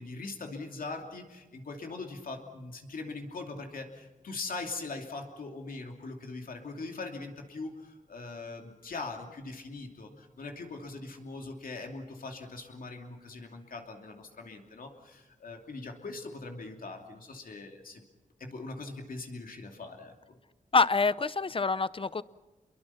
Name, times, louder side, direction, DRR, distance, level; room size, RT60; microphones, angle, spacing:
voice 1, 0.0-18.0 18.4-20.4, left 3 dB, 85° left, 3 dB, 2.8 m, -41 dB
voice 2, 20.7-22.2, left 4 dB, 40° left, 17 dB, 0.7 m, -26 dB
28.5 x 22.5 x 5.8 m, 1.2 s
wide cardioid pair, 70°, 14 cm